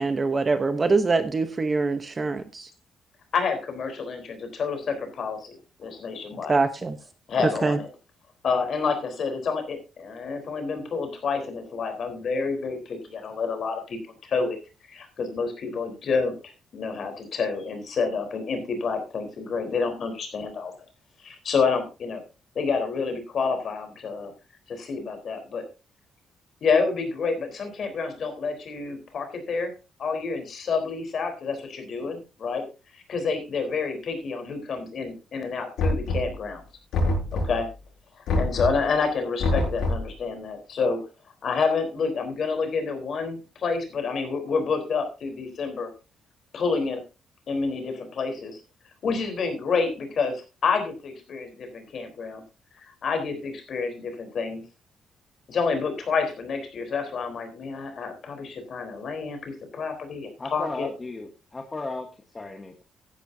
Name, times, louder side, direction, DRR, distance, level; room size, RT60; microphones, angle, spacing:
voice 1, 0.0-2.7 6.5-7.0 7.6-7.8, right 3 dB, 20° right, 10 dB, 0.9 m, -24 dB
voice 2, 3.3-5.5 5.8-6.6 7.3-7.9 8.4-14.6 14.9-16.3 16.7-20.7 21.2-22.2 22.6-24.3 24.7-25.6 26.6-29.7 30.0-32.6 32.9-36.6 37.3-37.7 38.2-41.0 41.4-45.9 46.5-47.0 47.5-48.6 49.0-52.4 52.8-54.6 55.5-60.9, left 5 dB, 40° left, 5 dB, 3.8 m, -28 dB
Knock, 35.8-36.5 36.9-37.7 38.3-38.9 39.4-40.1, left 2 dB, 75° left, 7.3 m, -25 dB
voice 3, 60.4-62.8, left 3 dB, 15° left, 4 dB, 1.3 m, -35 dB
16.0 x 10.5 x 2.7 m, 0.31 s
cardioid pair, 180°, 0 cm